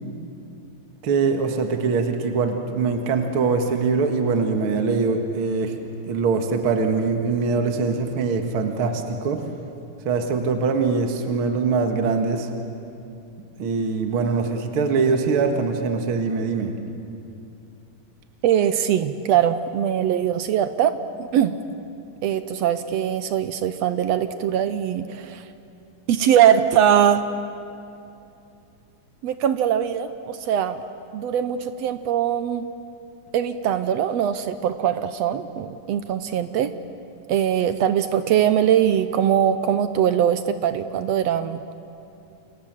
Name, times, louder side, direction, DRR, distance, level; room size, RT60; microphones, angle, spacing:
voice 1, 1.0-5.8 6.1-9.4 10.1-12.5 13.6-16.8, right 4 dB, 50° right, 5 dB, 2.3 m, -23 dB
voice 2, 18.4-21.6 22.2-25.4 26.1-27.2 29.2-30.8 31.1-32.6 33.3-36.7 37.3-41.6, right 9 dB, 70° right, 11 dB, 1.7 m, -21 dB
30.0 x 26.5 x 7.6 m, 2.6 s
omnidirectional pair, 3.6 m